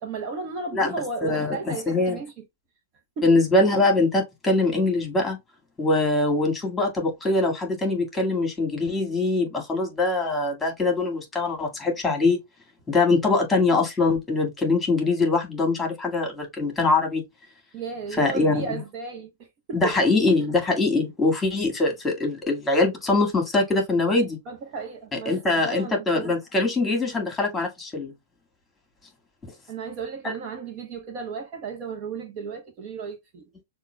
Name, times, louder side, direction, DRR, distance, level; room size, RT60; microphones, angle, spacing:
voice 1, 0.0-2.4 3.2-3.3 17.7-20.1 24.5-26.3 29.7-33.5, right 5 dB, 40° right, 1.1 m, -34 dB
voice 2, 1.2-2.2 3.2-5.4 5.8-12.4 12.9-17.2 18.2-18.8 19.7-24.4 25.3-28.1 30.2-30.3, left 3 dB, 10° left, 1.8 m, -23 dB
6.6 x 2.5 x 2.2 m
hypercardioid pair, 115°, 0 cm